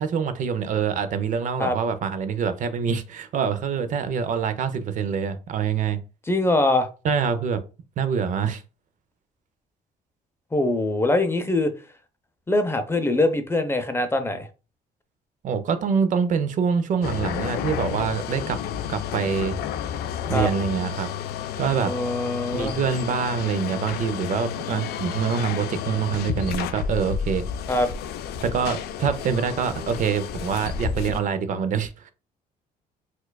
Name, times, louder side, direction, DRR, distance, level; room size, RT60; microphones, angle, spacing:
voice 1, 0.0-6.0 7.0-7.6 8.0-8.6 15.4-18.6 18.9-19.6 20.3-21.1 21.6-21.9 22.5-27.5 28.4-32.1, right 6 dB, 50° right, 0.4 m, -25 dB
voice 2, 6.3-6.9 10.5-11.7 12.5-14.5 20.3-20.5 21.8-22.8 27.7-27.9, left 2 dB, 15° left, 0.5 m, -23 dB
sound 1, 17.0-31.2, left 8 dB, 75° left, 0.4 m, -31 dB
4.3 x 2.3 x 2.2 m
cardioid pair, 110°, 17 cm